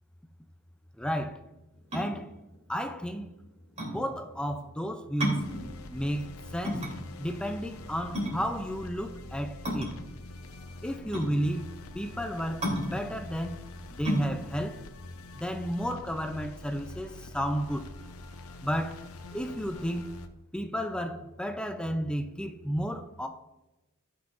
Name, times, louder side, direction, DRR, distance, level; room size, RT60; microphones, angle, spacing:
voice 1, 1.0-1.4 1.9-2.3 2.7-3.3 3.9-5.5 5.9-6.9 7.2-9.9 10.8-11.7 11.9-13.6 13.9-14.8 15.3-17.9 18.6-19.0 19.3-20.1 20.5-23.3, equal, 5° left, 0.4 m, -32 dB
sound 1, 1.7-16.1, equal, 30° right, 3.2 m, -35 dB
sound 2, 5.4-20.3, left 2 dB, 80° left, 0.7 m, -45 dB
17.5 x 5.9 x 2.6 m
head